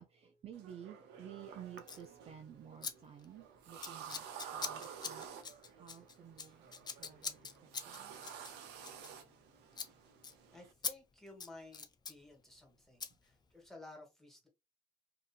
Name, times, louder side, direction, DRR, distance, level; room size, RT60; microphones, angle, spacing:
voice 1, 0.0-5.3 5.8-6.7 7.0-8.2 13.1-13.2, right 9 dB, 40° right, 0.4 m, -53 dB
sound 1, 0.5-10.7, right 8 dB, 80° right, 0.7 m, -51 dB
Scissors, 1.8-2.1 2.8-2.9 3.2-3.5 3.8-9.5 9.7-9.9 10.2-10.3 10.8-10.9 11.3-12.2 13.0-13.1, left 5 dB, 25° left, 0.4 m, -43 dB
voice 2, 10.5-14.5, left 2 dB, ahead, 1.3 m, -55 dB
2.8 x 2.5 x 2.3 m
cardioid pair, 110°, 17 cm